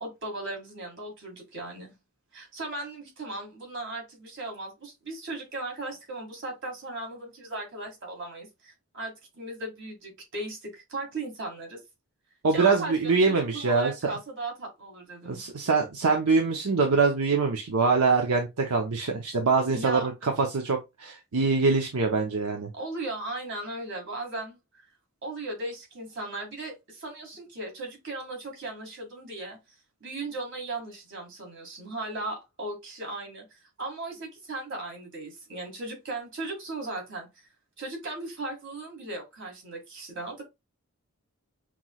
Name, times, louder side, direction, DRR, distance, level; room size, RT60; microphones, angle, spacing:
voice 1, 0.0-2.0 2.3-11.8 12.5-15.4 19.7-20.1 22.7-24.6 25.2-29.6 30.0-37.5 37.8-40.4, right 2 dB, 55° right, 2.0 m, -37 dB
voice 2, 12.4-13.9 15.3-22.7, right 4 dB, 80° right, 0.7 m, -24 dB
5.8 x 3.1 x 2.3 m
head